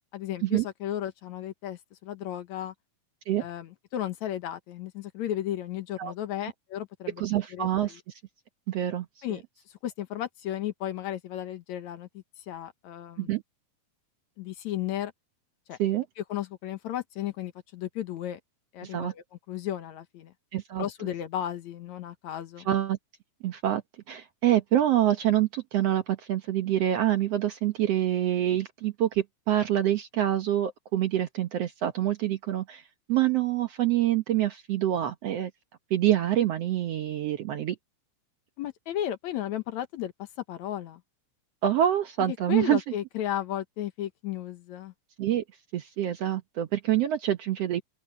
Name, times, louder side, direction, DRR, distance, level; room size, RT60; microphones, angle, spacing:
voice 1, 0.0-2.7 3.4-7.2 7.5-8.0 9.2-9.4 9.8-13.3 14.4-15.1 15.7-15.8 16.2-18.4 18.7-20.3 20.8-22.7 38.6-40.1 40.5-41.0 42.3-44.9, left 11 dB, 70° left, 2.2 m, -34 dB
voice 2, 7.2-8.0 8.7-9.4 13.2-13.4 15.8-16.0 18.8-19.1 20.5-20.9 22.7-23.0 23.4-23.8 24.1-32.8 33.1-35.5 35.9-37.8 41.6-42.8 45.2-45.4 45.7-47.8, right 12 dB, 65° right, 1.7 m, -26 dB
open air
omnidirectional pair, 3.7 m